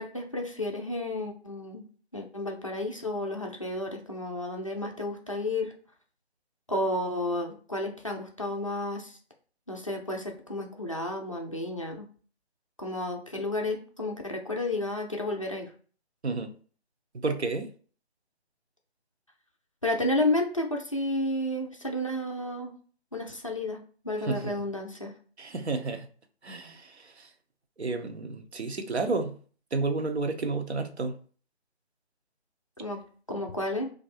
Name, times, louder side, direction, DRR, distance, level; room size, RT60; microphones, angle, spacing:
voice 1, 0.0-1.8 2.1-5.7 6.7-9.2 9.7-12.1 12.8-15.7 19.8-22.7 23.1-25.1 32.8-33.0 33.3-33.9, left 1 dB, 30° left, 1 dB, 0.4 m, -31 dB
voice 2, 17.1-17.7 24.2-24.6 25.4-26.1 26.4-27.3 27.8-29.4 29.7-31.2, right 3 dB, 80° right, 6 dB, 0.8 m, -31 dB
3.1 x 2.6 x 4.2 m, 0.42 s
figure-of-eight pair, 155°, 33 cm